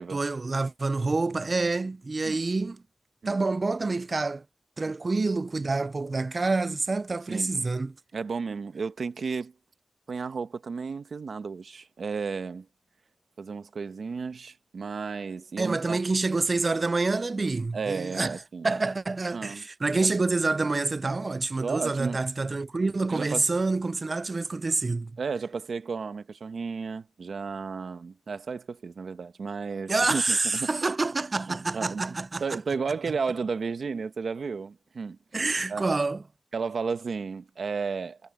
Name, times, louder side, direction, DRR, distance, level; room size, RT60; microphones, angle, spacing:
voice 1, 0.1-2.8 3.3-4.4 4.8-8.0 15.6-18.4 18.6-25.1 29.9-32.4 35.3-36.2, right 3 dB, 45° right, 0.4 m, -27 dB
voice 2, 8.1-9.5 10.1-12.7 13.4-16.0 17.7-18.7 19.3-19.6 19.9-20.1 21.6-22.2 23.1-23.4 25.2-30.9 31.5-32.0 32.4-35.2 35.7-35.9 36.5-38.2, right 5 dB, 85° right, 1.0 m, -33 dB
wide cardioid pair, 85°, 0 cm